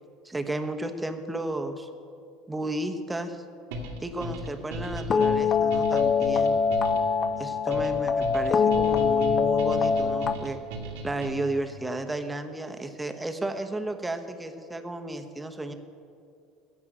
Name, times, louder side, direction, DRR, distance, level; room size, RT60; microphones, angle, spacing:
voice 1, 0.2-1.9 2.5-3.4 4.0-6.6 7.4-10.6 11.0-15.7, right 2 dB, 10° right, 7 dB, 1.2 m, -33 dB
sound 1, 3.7-11.6, equal, 70° right, 2.0 m, -37 dB
sound 2, 5.1-10.4, left 6 dB, 40° left, 0.6 m, -23 dB
15.5 x 6.1 x 9.3 m, 2.4 s
hypercardioid pair, 70°, 0 cm